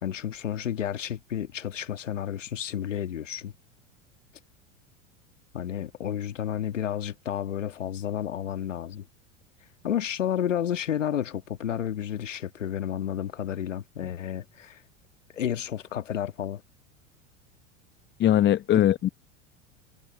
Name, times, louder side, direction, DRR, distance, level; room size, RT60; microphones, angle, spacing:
voice 1, 0.0-3.5 5.5-9.1 9.8-14.8 15.3-16.6 18.7-18.8, left 10 dB, 85° left, 1.7 m, -31 dB
voice 2, 18.2-19.1, left 12 dB, 30° left, 0.9 m, -20 dB
hypercardioid pair, 80°, 37 cm